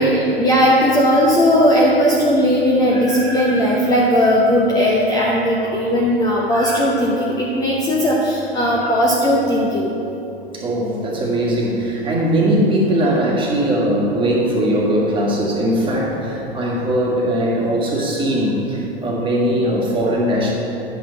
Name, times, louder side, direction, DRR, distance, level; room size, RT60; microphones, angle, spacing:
voice 1, 0.0-9.9 18.0-18.1 20.0-20.1, equal, 10° left, -4 dB, 0.9 m, -17 dB
voice 2, 10.5-20.5, right 1 dB, 15° right, -3 dB, 1.7 m, -19 dB
9.8 x 7.9 x 3.9 m, 2.9 s
hypercardioid pair, 105°, 31 cm